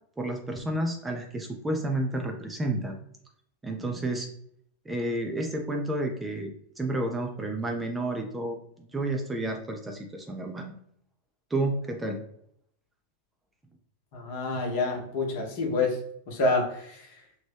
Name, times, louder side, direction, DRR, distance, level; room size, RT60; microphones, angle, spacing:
voice 1, 0.2-3.0 3.6-4.3 4.9-10.7 11.5-12.2, right 1 dB, 10° right, 3 dB, 0.4 m, -31 dB
voice 2, 14.1-16.0 16.3-17.1, left 3 dB, 50° left, 1 dB, 0.9 m, -27 dB
2.9 x 2.1 x 3.3 m, 0.67 s
figure-of-eight pair, 90°, 0 cm